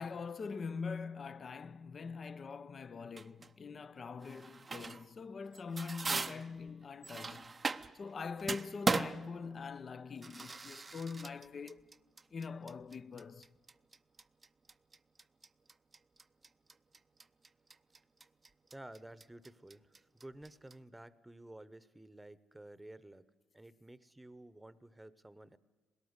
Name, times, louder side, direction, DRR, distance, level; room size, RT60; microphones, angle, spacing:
voice 1, 0.0-7.7 7.9-11.8 12.3-13.5, left 5 dB, 40° left, 0.7 m, -43 dB
sound 1, 3.2-3.5 4.2-5.1 5.5-8.1 8.4-20.8, right 4 dB, 30° right, 0.7 m, -39 dB
voice 2, 18.7-23.2 23.5-25.6, right 1 dB, 10° right, 1.0 m, -53 dB
20.5 x 18.0 x 8.1 m
cardioid pair, 90°, 0 cm